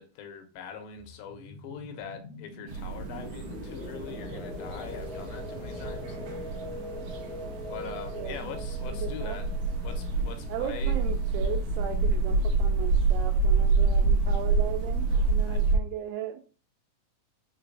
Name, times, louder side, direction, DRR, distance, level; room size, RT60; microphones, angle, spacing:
voice 1, 0.0-6.8 7.7-9.5 9.8-11.0 15.4-15.6, left 7 dB, 85° left, 6 dB, 2.4 m, -43 dB
sound 1, 1.0-11.4, equal, 35° left, 1.1 m, -43 dB
sound 2, 2.7-15.8, right 3 dB, 70° right, 2.0 m, -28 dB
voice 2, 8.1-8.5 9.0-9.4 10.5-16.4, right 9 dB, 85° right, 2 dB, 2.5 m, -37 dB
5.8 x 3.3 x 2.5 m, 0.36 s
omnidirectional pair, 4.4 m